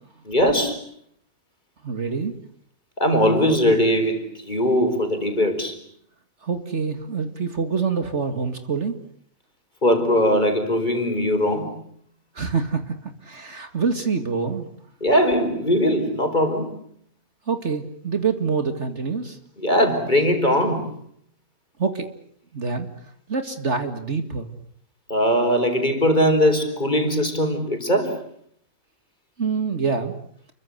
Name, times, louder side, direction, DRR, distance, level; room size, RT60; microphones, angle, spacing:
voice 1, 0.3-0.8 3.0-5.7 9.8-11.7 15.0-16.7 19.6-20.9 25.1-28.2, equal, 30° left, 6 dB, 5.0 m, -20 dB
voice 2, 1.8-2.3 6.4-9.0 12.3-14.7 17.5-19.4 21.8-22.1 22.5-22.9 23.3-24.5 29.4-30.2, right 5 dB, 50° right, 8 dB, 2.4 m, -26 dB
30.0 x 23.5 x 8.0 m, 0.64 s
omnidirectional pair, 1.5 m